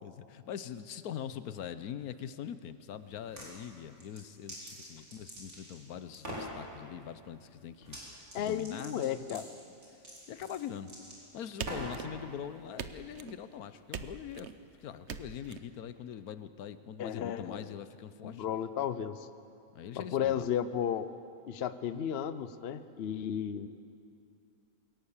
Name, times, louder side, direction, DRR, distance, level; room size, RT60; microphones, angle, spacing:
voice 1, 0.0-9.0 9.3-9.5 9.9-10.0 10.3-11.0 11.3-14.5 14.8-18.4 19.7-20.5, left 9 dB, 85° left, 13 dB, 1.3 m, -43 dB
sound 1, 3.1-3.5 3.9-5.8 6.1-6.5 7.8-8.0 8.3-12.0, right 1 dB, 70° right, 4.8 m, -44 dB
voice 2, 8.3-9.4 17.0-17.7 18.2-19.3 19.9-21.1 21.5-23.7, left 9 dB, 50° left, 12 dB, 0.9 m, -33 dB
sound 2, 11.6-12.4 12.8-13.4 13.9-14.6 15.1-15.6, right 7 dB, 55° right, 1.0 m, -42 dB
22.0 x 18.0 x 7.3 m, 2.5 s
omnidirectional pair, 1.5 m